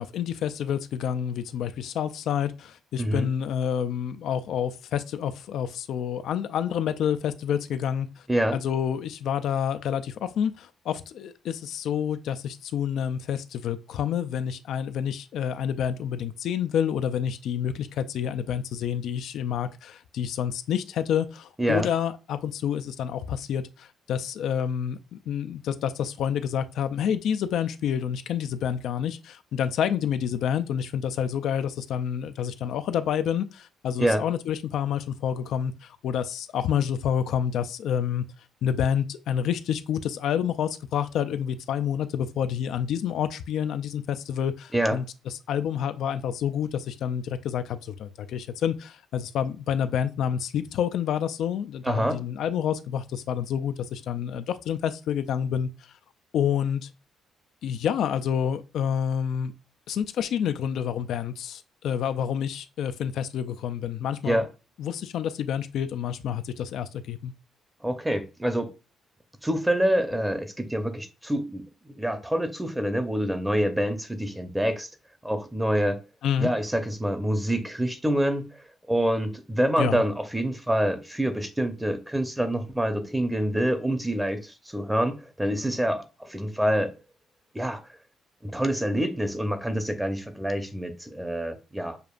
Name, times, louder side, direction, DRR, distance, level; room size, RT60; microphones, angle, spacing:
voice 1, 0.0-8.1 8.5-38.2 38.6-55.7 56.3-56.9 57.6-59.5 59.9-64.5 64.8-67.3 76.2-76.5 79.8-80.0, left 8 dB, 75° left, 0.3 m, -28 dB
voice 2, 3.0-3.3 8.3-8.6 21.6-21.9 34.0-34.3 44.7-45.0 51.8-52.2 64.3-64.5 67.8-68.7 69.4-71.6 72.0-74.9 75.2-76.0 76.4-78.5 78.9-86.9 87.5-87.8 88.4-92.0, right 1 dB, 10° right, 0.7 m, -26 dB
6.6 x 2.4 x 2.4 m
cardioid pair, 90°, 0 cm